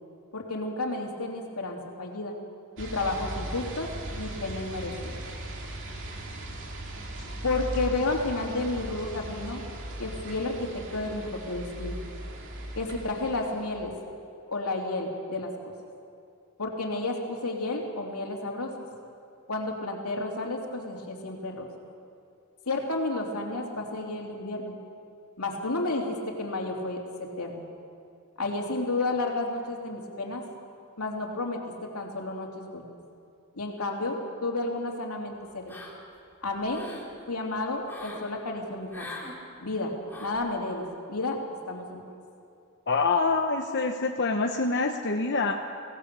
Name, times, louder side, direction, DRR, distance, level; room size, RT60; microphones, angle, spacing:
voice 1, 0.3-2.4 2.8-3.9 4.2-5.1 7.4-9.6 10.0-12.0 12.7-13.9 14.5-15.5 16.6-18.7 19.5-21.7 22.7-24.7 25.4-27.7 28.4-30.4 31.0-31.6 31.9-32.9 33.5-35.6 36.4-36.8 37.3-39.1 39.6-41.4 41.7-42.0, left 2 dB, 85° left, 0 dB, 3.0 m, -31 dB
sound 1, 2.8-13.9, right 1 dB, 60° right, 2.5 m, -38 dB
sound 2, 35.7-36.2 36.5-37.1 37.9-38.3 38.9-39.4 40.1-40.4, left 1 dB, 10° left, 3.2 m, -42 dB
voice 2, 42.9-45.6, left 3 dB, 50° left, 3 dB, 1.0 m, -26 dB
23.5 x 17.5 x 6.9 m, 2.6 s
head